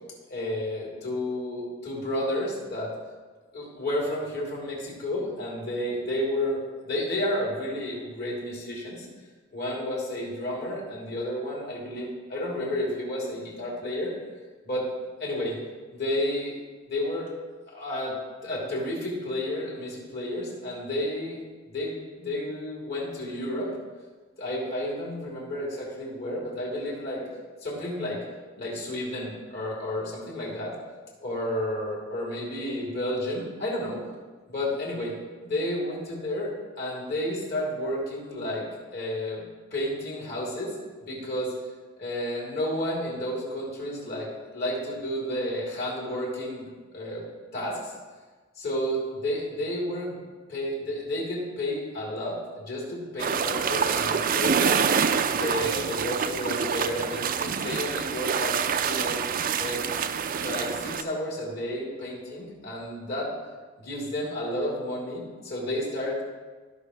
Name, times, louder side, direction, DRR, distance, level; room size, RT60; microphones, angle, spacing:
voice 1, 0.3-2.9 3.5-9.1 9.5-14.1 14.6-14.9 15.2-15.6 15.9-16.5 16.9-17.3 17.7-18.2 18.4-21.4 21.7-23.7 24.4-27.2 27.6-28.2 28.6-30.7 31.2-34.0 34.5-35.1 35.4-39.5 39.7-40.7 41.0-41.5 42.0-47.2 47.5-47.8 48.6-54.8 55.3-58.6 58.8-59.2 59.6-59.8 60.4-63.3 63.8-66.3, left 1 dB, 55° left, -5 dB, 3.5 m, -31 dB
sound 1, 53.2-61.0, right 7 dB, 45° right, 0.4 m, -26 dB
16.0 x 6.1 x 3.4 m, 1.3 s
head